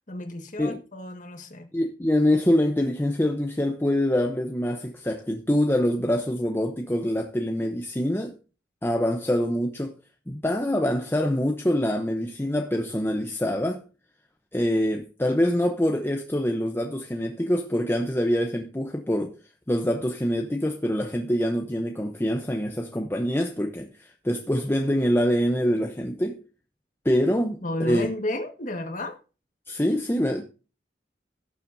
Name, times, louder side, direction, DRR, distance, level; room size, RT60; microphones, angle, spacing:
voice 1, 0.1-1.7 27.6-29.2, left 1 dB, 45° left, 1.6 m, -32 dB
voice 2, 1.7-8.3 8.8-9.9 10.3-13.8 14.5-19.3 19.7-26.4 27.0-27.6 27.9-28.1 29.7-30.4, equal, 15° left, 0.8 m, -25 dB
17.0 x 7.4 x 2.7 m
head